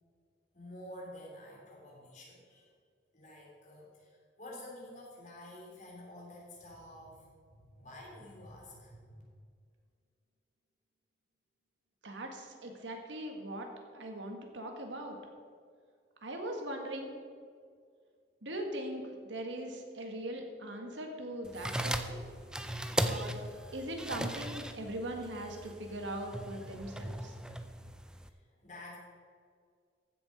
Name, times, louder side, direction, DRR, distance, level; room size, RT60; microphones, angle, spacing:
voice 1, 0.5-2.7 3.1-9.2 28.2-29.0, left 1 dB, 40° left, -3 dB, 3.4 m, -50 dB
voice 2, 12.0-13.7 13.9-15.2 16.2-17.2 18.4-22.2 23.0-23.4 23.7-27.3, right 1 dB, 85° right, 3 dB, 1.7 m, -40 dB
sound 1, 21.5-28.3, right 1 dB, 5° right, 0.5 m, -38 dB
15.0 x 7.1 x 5.2 m, 2.1 s
head